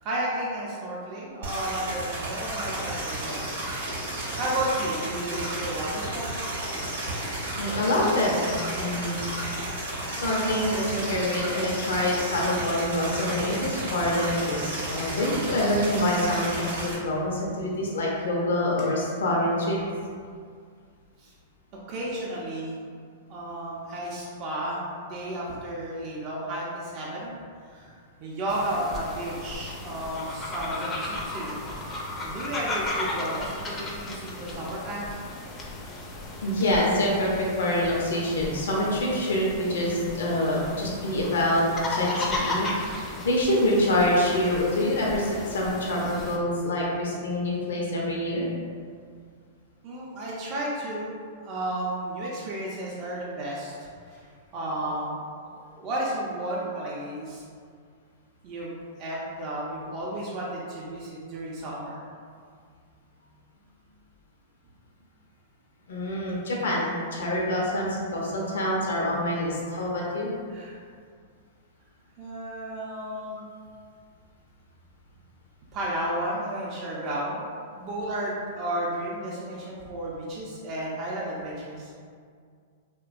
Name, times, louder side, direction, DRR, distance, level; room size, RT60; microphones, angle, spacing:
voice 1, 0.0-3.5 4.4-6.4 21.2-21.3 21.9-22.8 23.3-27.4 27.6-27.9 28.2-31.6 32.2-35.2 49.8-51.1 51.4-54.3 54.5-57.4 58.4-58.7 59.0-62.1 70.5-70.8 72.2-73.4 75.7-77.5 77.8-81.9, right 1 dB, 40° right, -5 dB, 0.4 m, -33 dB
sound 1, 1.4-16.9, right 1 dB, 80° right, 0.8 m, -33 dB
voice 2, 7.6-9.2 10.1-19.8 36.4-41.6 41.9-48.5 65.9-70.3, left 1 dB, 80° left, -3 dB, 0.5 m, -26 dB
sound 2, 28.5-46.4, left 2 dB, 25° left, 0.4 m, -35 dB
2.7 x 2.1 x 2.4 m, 2.1 s
hypercardioid pair, 120°, 0 cm